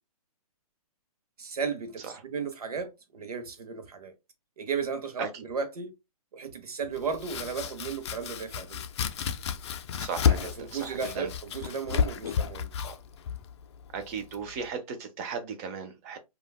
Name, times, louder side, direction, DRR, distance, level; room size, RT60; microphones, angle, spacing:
voice 1, 1.4-4.1 4.6-5.9 6.3-8.8 10.6-13.0, right 5 dB, 90° right, 0.7 m, -35 dB
Domestic sounds home sounds, 6.9-14.7, left 7 dB, 50° left, 0.4 m, -32 dB
voice 2, 10.0-11.3 13.9-16.2, right 6 dB, 25° right, 0.5 m, -36 dB
3.2 x 2.2 x 2.2 m
hypercardioid pair, 150°, 19 cm